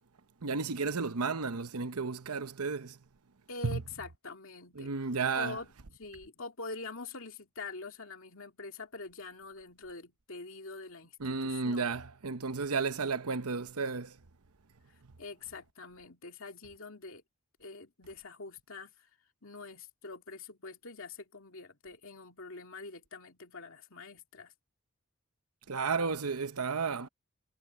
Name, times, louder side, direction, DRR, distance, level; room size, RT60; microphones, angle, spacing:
voice 1, 0.4-3.0 3.6-3.8 4.8-5.6 11.2-14.2 25.7-27.1, right 4 dB, 85° right, 1.0 m, -33 dB
voice 2, 3.5-4.9 5.3-5.7 6.0-11.8 15.2-17.2 17.6-19.1 19.4-24.5, left 3 dB, 65° left, 2.6 m, -45 dB
head